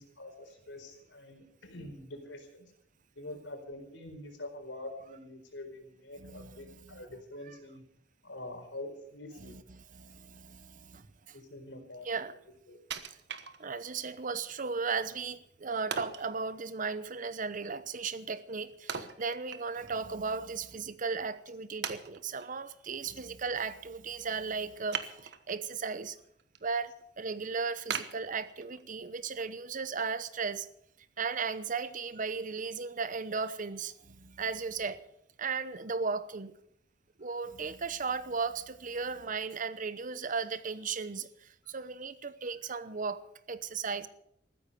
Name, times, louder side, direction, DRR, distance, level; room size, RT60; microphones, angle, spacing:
voice 1, 0.0-2.7 3.2-7.8 8.2-9.6 11.3-12.1 12.7-12.8, left 1 dB, 85° left, 4.3 m, -45 dB
voice 2, 6.2-7.0 9.4-11.4 12.1-12.3 13.6-26.2 26.6-30.7 31.2-35.0 35.4-36.6 37.2-44.1, right 5 dB, 45° right, 0.9 m, -36 dB
Wood, 12.9-14.0 14.5-14.6 15.9-16.3 18.9-20.0 20.3-20.4 21.1-21.2 21.8-22.5 24.9-25.7 26.1-26.6 27.0-27.1 27.9-28.9 29.4-29.5, right 7 dB, 65° right, 1.2 m, -39 dB
14.5 x 13.0 x 6.8 m
head